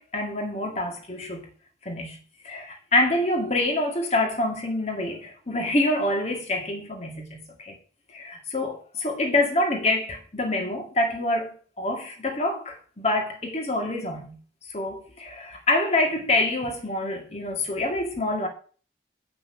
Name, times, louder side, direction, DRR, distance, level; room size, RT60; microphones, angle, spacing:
voice 1, 0.0-1.4 1.8-2.2 2.4-7.7 8.1-14.4 14.7-18.5, left 2 dB, 35° left, 2.0 m, -26 dB
6.6 x 6.0 x 7.2 m
head